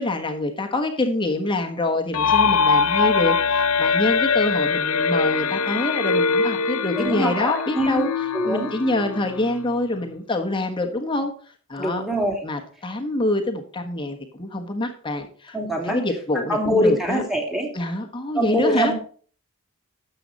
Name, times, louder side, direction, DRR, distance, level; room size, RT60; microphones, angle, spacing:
voice 1, 0.0-11.3 11.7-12.0 12.4-15.6 15.8-17.2 17.7-18.9, left 2 dB, 20° left, 4 dB, 1.3 m, -26 dB
sound 1, 2.1-9.8, left 5 dB, 70° left, 0.6 m, -22 dB
voice 2, 7.0-8.1 8.3-8.7 11.8-12.4 15.5-16.0 16.5-17.7 18.3-18.9, equal, ahead, 1 dB, 2.7 m, -23 dB
13.0 x 7.8 x 4.1 m, 0.43 s
head